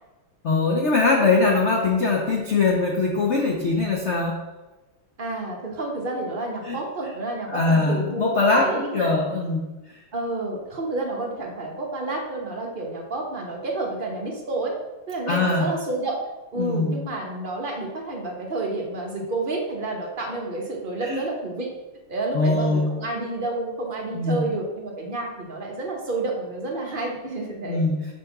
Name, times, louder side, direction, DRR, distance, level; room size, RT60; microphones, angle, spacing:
voice 1, 0.4-4.4 6.6-6.8 7.5-10.0 15.3-15.7 16.6-17.0 21.0-21.2 22.3-22.9 24.1-24.5 27.7-28.0, left 3 dB, 70° left, -1 dB, 0.6 m, -22 dB
voice 2, 5.2-9.2 10.1-14.8 15.1-16.2 16.5-21.7 22.1-27.8, right 2 dB, 40° right, 0 dB, 0.8 m, -29 dB
6.2 x 4.1 x 5.8 m, 1.1 s
omnidirectional pair, 2.4 m